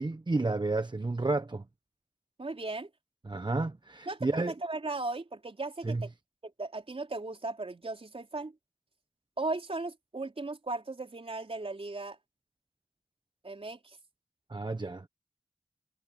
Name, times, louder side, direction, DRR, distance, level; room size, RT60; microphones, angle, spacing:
voice 1, 0.0-1.6 3.3-4.5 5.8-6.0 14.5-15.1, right 2 dB, 45° right, 1.1 m, -31 dB
voice 2, 2.4-2.9 4.1-6.1 6.4-8.5 9.4-12.2 13.4-14.0, right 2 dB, 60° right, 4.0 m, -37 dB
cardioid pair, 45°, 11 cm